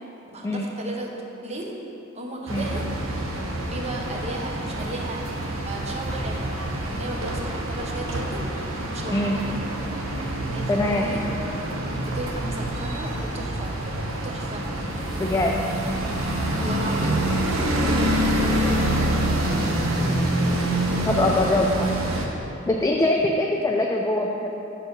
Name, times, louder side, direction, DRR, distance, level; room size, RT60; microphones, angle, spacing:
voice 1, 0.3-1.1 1.4-1.8 2.1-2.8 3.7-5.2 5.6-6.6 6.8-8.5 8.9-9.6 10.5-11.2 12.0-13.8 14.2-14.7 16.5-17.5 17.8-19.2, right 1 dB, 35° right, 0 dB, 0.8 m, -35 dB
sound 1, 2.5-22.3, right 1 dB, 85° right, 0.8 m, -26 dB
voice 2, 10.7-11.1 15.2-15.8 21.1-21.9 22.7-24.5, left 2 dB, 15° left, -1 dB, 0.3 m, -23 dB
6.7 x 4.5 x 5.2 m, 3.0 s
head